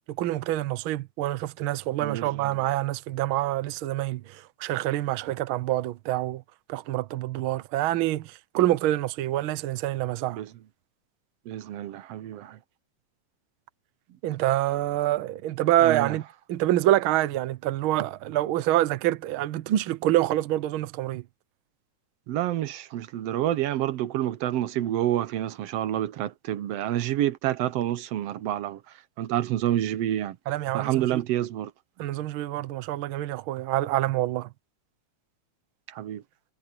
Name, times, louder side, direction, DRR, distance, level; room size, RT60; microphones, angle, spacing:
voice 1, 0.2-6.4 6.7-10.4 14.2-21.2 30.5-31.2 32.0-34.5, right 14 dB, 85° right, 1.1 m, -26 dB
voice 2, 2.0-2.6 10.3-10.5 11.5-12.6 15.8-16.2 22.3-28.8 29.2-30.4 30.7-31.7 35.9-36.2, right 12 dB, 70° right, 1.6 m, -28 dB
omnidirectional pair, 3.5 m